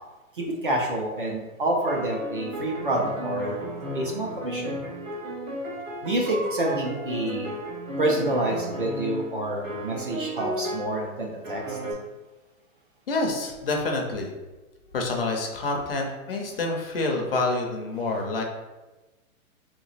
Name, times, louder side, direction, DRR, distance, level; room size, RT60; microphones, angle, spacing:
voice 1, 0.3-3.6 3.9-4.8 6.0-7.5 8.0-11.8, right 1 dB, 40° right, 0 dB, 0.4 m, -28 dB
sound 1, 1.8-9.4 9.6-11.0 11.4-11.9, equal, 65° right, 1.4 m, -34 dB
voice 2, 13.1-14.3 14.9-18.4, left 2 dB, 45° left, 1 dB, 0.5 m, -27 dB
3.1 x 3.0 x 4.0 m, 1.1 s
hypercardioid pair, 175°, 42 cm